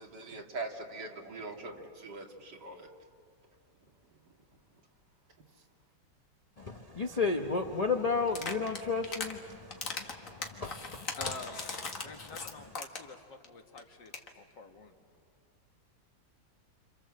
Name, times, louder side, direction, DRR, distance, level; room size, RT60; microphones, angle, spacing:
voice 1, 0.0-2.9, right 3 dB, 65° right, 1 dB, 2.9 m, -42 dB
voice 2, 6.6-11.1 12.0-12.1, left 4 dB, 30° left, 5 dB, 0.7 m, -33 dB
sound 1, 8.3-9.3 9.7-13.2 13.4-13.5 13.8-13.9 14.1-14.3, left 4 dB, 45° left, 2.0 m, -39 dB
voice 3, 11.1-11.6 12.0-14.9, left 3 dB, 70° left, 4 dB, 2.4 m, -47 dB
28.5 x 27.5 x 7.6 m, 2.2 s
omnidirectional pair, 2.0 m